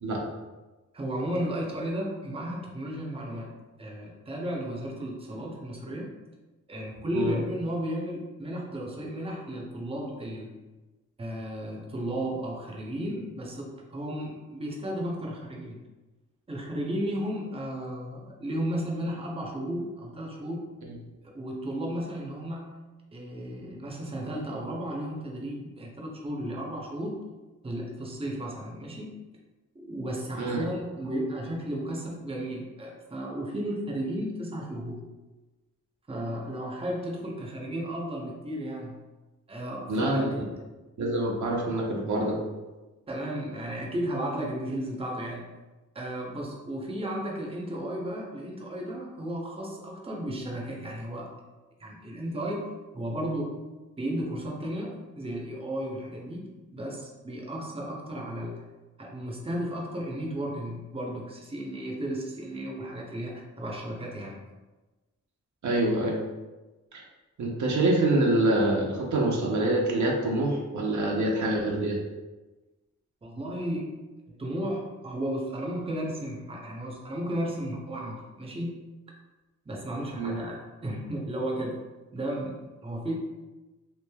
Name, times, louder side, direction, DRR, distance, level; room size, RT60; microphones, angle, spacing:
voice 1, 0.9-3.5 3.8-6.1 6.7-10.5 11.2-15.8 16.5-20.7 21.2-22.7 23.1-27.2 27.6-29.2 29.7-35.0 36.1-39.0 39.5-40.6 43.1-45.4 45.9-51.3 51.8-52.7 52.9-53.5 54.0-58.6 59.0-64.4 73.2-74.0 74.3-78.8 79.7-81.8 82.1-83.1, right 1 dB, 20° right, -1 dB, 0.6 m, -34 dB
voice 2, 39.9-40.4 41.0-42.4 65.6-66.2 66.9-67.0 67.4-72.0 80.2-80.4, right 1 dB, 70° right, -2 dB, 0.6 m, -26 dB
3.2 x 2.5 x 2.2 m, 1.2 s
cardioid pair, 65°, 31 cm